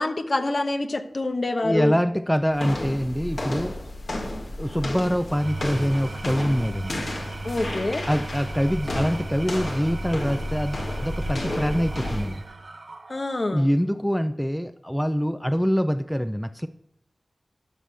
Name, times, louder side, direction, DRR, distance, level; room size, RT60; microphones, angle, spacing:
voice 1, 0.0-1.9 7.4-8.1 13.1-13.7, left 2 dB, 55° left, 6 dB, 1.0 m, -26 dB
voice 2, 1.6-3.8 4.6-7.0 8.1-12.4 13.5-16.7, equal, 5° left, 10 dB, 0.5 m, -25 dB
sound 1, 2.5-12.4, left 1 dB, 75° left, 1.7 m, -32 dB
Engine / Tools, 5.2-13.5, right 2 dB, 75° right, 1.1 m, -37 dB
12.5 x 6.0 x 3.4 m, 0.76 s
cardioid pair, 45°, 0 cm